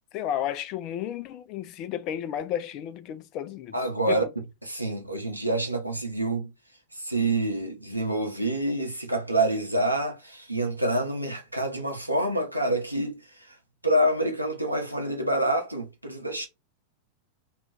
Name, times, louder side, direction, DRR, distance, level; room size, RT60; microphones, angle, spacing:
voice 1, 0.1-3.7 4.1-4.2, left 10 dB, 40° left, 0.4 m, -32 dB
voice 2, 3.7-4.2 4.6-6.5 6.9-13.6 13.8-16.5, right 1 dB, 90° right, 0.7 m, -27 dB
2.4 x 2.3 x 3.7 m
figure-of-eight pair, 90°, 0 cm